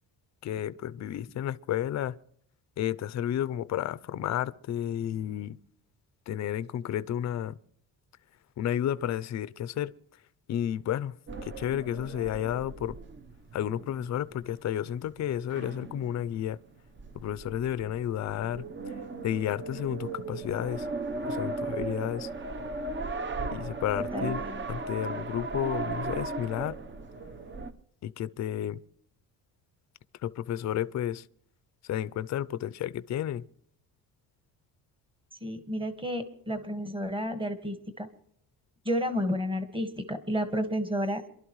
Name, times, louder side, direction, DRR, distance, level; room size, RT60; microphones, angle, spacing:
voice 1, 0.4-2.2 2.8-5.6 6.3-7.6 8.6-9.9 10.5-11.2 11.4-13.0 13.5-16.6 17.1-19.0 19.2-20.9 21.3-22.3 23.5-24.4 24.7-26.8 28.0-28.8 30.2-31.3 31.8-33.5, left 11 dB, 45° left, 0.6 m, -32 dB
sound 1, 11.3-27.7, right 3 dB, 30° right, 0.9 m, -37 dB
voice 2, 24.1-24.6 35.4-38.1 38.9-41.2, equal, 15° right, 1.6 m, -31 dB
27.0 x 12.0 x 3.1 m
cardioid pair, 145°, 38 cm